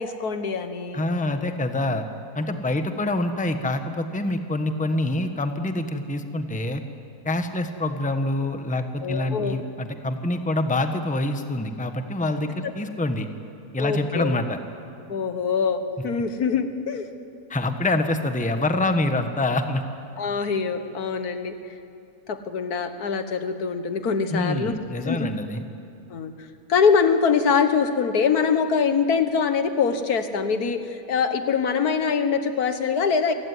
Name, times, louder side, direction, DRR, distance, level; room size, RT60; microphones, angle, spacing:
voice 1, 0.0-1.0 9.0-9.6 12.6-12.7 13.8-14.4 15.1-17.1 20.2-21.5 22.3-25.3 26.1-33.3, left 6 dB, 75° left, 9 dB, 1.8 m, -24 dB
voice 2, 0.9-2.1 2.3-6.8 7.2-13.3 13.7-14.6 17.5-19.8 24.3-25.6, left 2 dB, 5° left, 7 dB, 1.1 m, -26 dB
27.5 x 16.5 x 9.7 m, 2.6 s
omnidirectional pair, 1.6 m